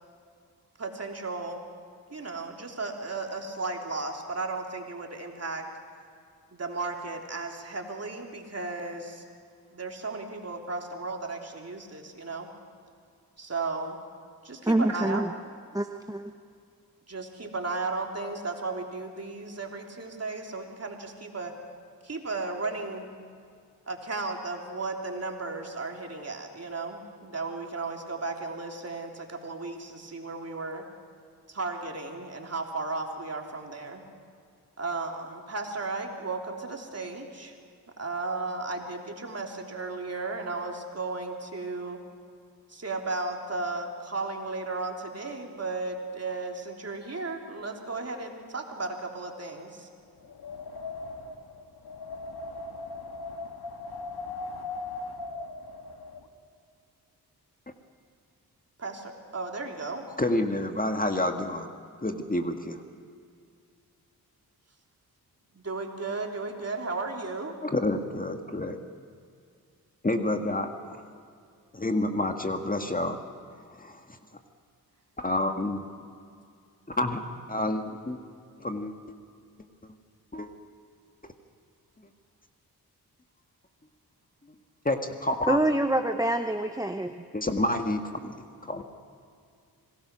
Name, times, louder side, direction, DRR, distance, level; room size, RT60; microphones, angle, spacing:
voice 1, 0.8-1.6 2.1-5.6 6.5-9.2 9.7-12.5 13.4-14.0 14.4-15.2 17.1-21.5 22.0-23.1 23.9-30.8 31.5-34.0 34.8-37.5 38.0-42.0 42.7-49.9 58.8-60.0 65.5-67.6, right 3 dB, 40° right, 2 dB, 3.5 m, -35 dB
voice 2, 14.6-15.3 15.7-16.3 85.5-87.1, right 1 dB, 10° right, 7 dB, 0.9 m, -26 dB
Wind, 50.2-56.2, left 3 dB, 75° left, 1.8 m, -39 dB
voice 3, 60.2-61.7 62.0-62.8 67.6-68.8 70.0-70.7 71.7-73.2 73.8-74.0 75.2-75.8 76.9-78.2 78.6-78.9 80.3-80.5 84.8-85.6 87.3-88.3 88.7-88.8, left 1 dB, 20° left, 5 dB, 1.7 m, -28 dB
26.0 x 18.0 x 6.2 m, 2.3 s
cardioid pair, 50°, 39 cm